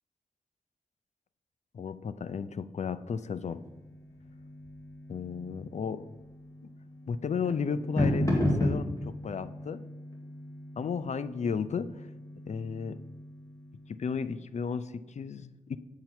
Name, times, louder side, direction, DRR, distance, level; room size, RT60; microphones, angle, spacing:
voice 1, 1.7-3.6 5.1-6.1 6.6-6.7 7.1-9.8 10.8-12.1 12.5-13.0 13.9-15.8, left 6 dB, 60° left, 14 dB, 0.4 m, -34 dB
sound 1, 3.4-14.2, left 1 dB, 25° left, 2.1 m, -35 dB
7.8 x 6.9 x 4.4 m, 1.1 s
wide cardioid pair, 80°, 13 cm